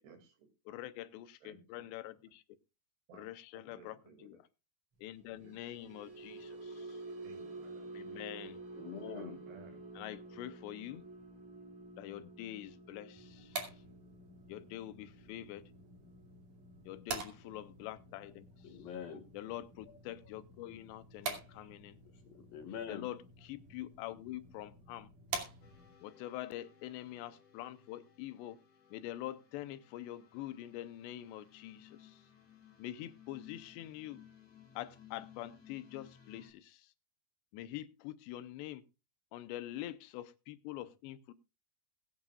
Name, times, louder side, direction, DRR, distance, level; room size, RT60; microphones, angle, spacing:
voice 1, 0.0-0.5 1.4-1.6 3.1-4.4 5.3-5.9 7.2-7.9 9.1-9.9, right 5 dB, 70° right, 6 dB, 4.4 m, -58 dB
voice 2, 0.7-2.2 3.1-4.4 5.0-7.0 7.9-8.6 10.0-11.0 12.0-13.7 14.5-15.6 16.9-18.8 19.3-22.0 22.9-25.1 26.0-28.6 28.9-32.2 32.8-34.2 34.8-36.9 37.5-38.8 39.3-41.3, left 14 dB, 85° left, 13 dB, 3.0 m, -45 dB
sound 1, 5.3-21.7 22.0-22.3 22.7-22.9, right 2 dB, 35° right, 4.1 m, -51 dB
voice 3, 8.8-9.4 18.6-19.3 21.5-21.7 22.3-23.1, left 7 dB, 65° left, 6 dB, 2.8 m, -44 dB
sound 2, 13.2-26.0, right 4 dB, 50° right, 3.6 m, -47 dB
sound 3, 25.6-36.5, left 9 dB, 45° left, 3.1 m, -60 dB
22.0 x 9.1 x 2.4 m, 0.27 s
omnidirectional pair, 4.9 m